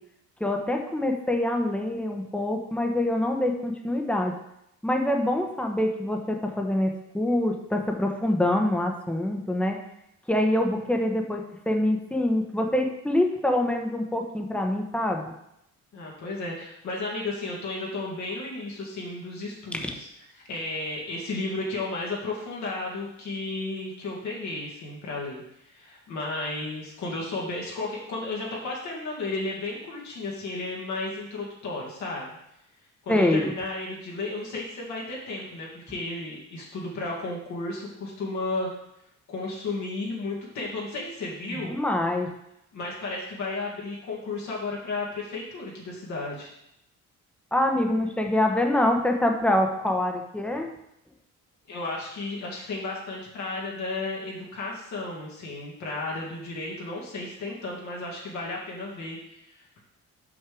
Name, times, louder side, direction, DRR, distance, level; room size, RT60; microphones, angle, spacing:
voice 1, 0.4-4.3 4.8-9.8 10.3-15.3 19.8-19.9 33.1-33.5 41.5-42.3 47.5-50.7, left 1 dB, 5° left, 2 dB, 1.1 m, -25 dB
voice 2, 15.9-20.1 20.4-32.3 33.0-38.7 39.3-41.7 42.7-46.5 51.7-59.8, left 2 dB, 70° left, -4 dB, 2.1 m, -33 dB
6.1 x 5.4 x 4.9 m, 0.81 s
cardioid pair, 90°, 30 cm